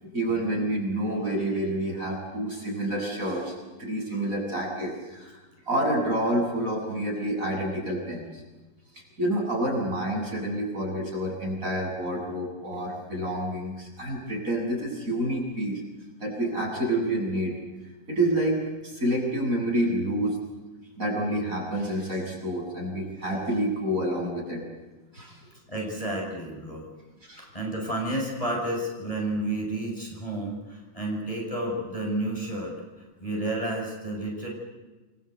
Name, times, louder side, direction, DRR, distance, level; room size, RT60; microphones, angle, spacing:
voice 1, 0.0-5.4 5.7-8.4 8.9-15.8 16.2-17.6 18.1-18.6 18.8-20.4 21.0-24.6 25.1-25.4 27.3-27.5, right 1 dB, 45° right, -1 dB, 8.4 m, -28 dB
voice 2, 25.7-26.9 27.4-32.7 33.2-34.5, right 1 dB, 15° left, -1 dB, 7.5 m, -31 dB
29.5 x 23.0 x 8.2 m, 1.2 s
omnidirectional pair, 2.1 m